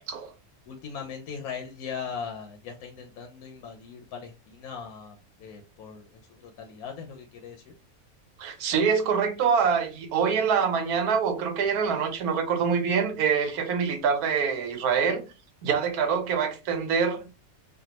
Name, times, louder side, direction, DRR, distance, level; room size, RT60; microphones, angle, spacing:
voice 1, 0.7-6.1 6.4-7.7, left 6 dB, 80° left, 1.1 m, -39 dB
voice 2, 8.4-15.2 15.6-17.3, right 6 dB, 85° right, 1.2 m, -25 dB
3.4 x 2.2 x 2.8 m
omnidirectional pair, 1.5 m